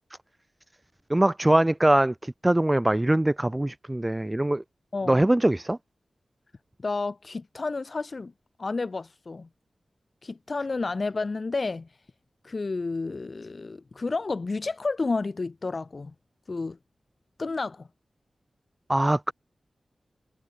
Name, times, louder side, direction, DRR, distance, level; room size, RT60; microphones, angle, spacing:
voice 1, 1.1-4.6 5.1-5.8 18.9-19.3, right 1 dB, 20° right, 3.2 m, -22 dB
voice 2, 4.9-5.2 6.8-8.3 8.6-9.5 10.2-11.9 12.4-16.1 16.5-16.8 17.4-17.9, left 3 dB, 55° left, 2.5 m, -31 dB
cardioid pair, 45°, 0 cm